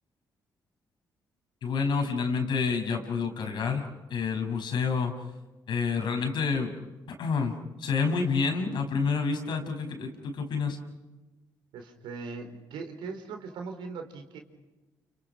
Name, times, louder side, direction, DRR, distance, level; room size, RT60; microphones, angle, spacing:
voice 1, 1.6-5.2 5.7-6.7 7.2-10.8, left 5 dB, 70° left, 4 dB, 5.8 m, -28 dB
voice 2, 11.7-14.4, right 4 dB, 85° right, 5 dB, 4.5 m, -39 dB
30.0 x 29.5 x 6.1 m, 1.2 s
supercardioid pair, 65°, 8 cm